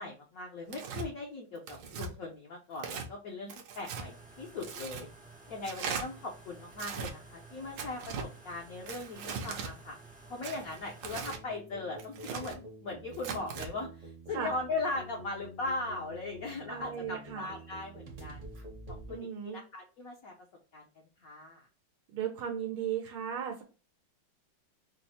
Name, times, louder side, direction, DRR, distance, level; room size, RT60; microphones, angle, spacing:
voice 1, 0.0-5.1 5.5-10.0 10.3-18.4 18.9-20.3 20.7-20.8 21.2-21.7, left 3 dB, 65° left, 0 dB, 0.9 m, -39 dB
Tearing, 0.7-1.1 1.7-2.1 2.8-3.1 3.5-4.1 4.6-5.0 5.6-6.0 6.7-7.1 7.8-8.3 8.9-9.7 10.4-11.4 12.0-12.6 13.1-13.7, right 6 dB, 70° right, 1.2 m, -39 dB
sound 1, 4.0-11.3, right 3 dB, 10° right, 0.4 m, -53 dB
sound 2, 11.2-19.2, right 1 dB, 40° right, 0.7 m, -48 dB
voice 2, 16.7-17.5 19.1-19.6 22.1-23.6, right 9 dB, 90° right, 1 dB, 1.6 m, -36 dB
5.1 x 2.1 x 2.8 m, 0.34 s
omnidirectional pair, 2.3 m